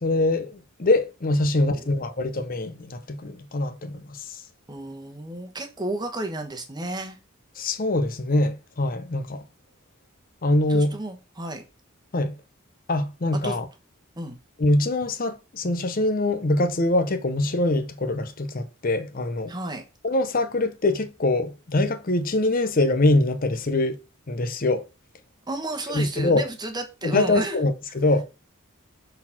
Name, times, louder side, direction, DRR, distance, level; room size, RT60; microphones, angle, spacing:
voice 1, 0.0-4.4 7.6-9.4 10.4-11.0 12.1-12.3 12.9-13.7 14.6-19.5 20.0-24.0 24.3-24.8 25.9-26.4 27.0-28.2, left 2 dB, 40° left, 0.7 m, -23 dB
voice 2, 1.6-1.9 4.7-7.2 10.7-11.6 13.4-13.6 14.2-14.4 19.5-19.8 25.5-27.6, right 2 dB, 20° right, 1.2 m, -32 dB
6.6 x 4.2 x 5.9 m
head